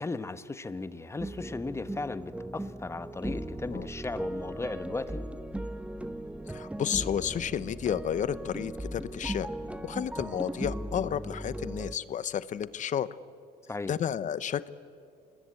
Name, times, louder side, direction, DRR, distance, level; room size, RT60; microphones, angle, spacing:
voice 1, 0.0-5.2 13.7-13.9, left 3 dB, 15° left, 13 dB, 1.0 m, -36 dB
sound 1, 1.2-11.9, right 1 dB, 5° right, 1.0 m, -38 dB
voice 2, 6.5-9.5 9.8-13.1 13.9-14.7, left 9 dB, 50° left, 17 dB, 0.8 m, -31 dB
27.0 x 20.5 x 8.5 m, 2.5 s
cardioid pair, 110°, 17 cm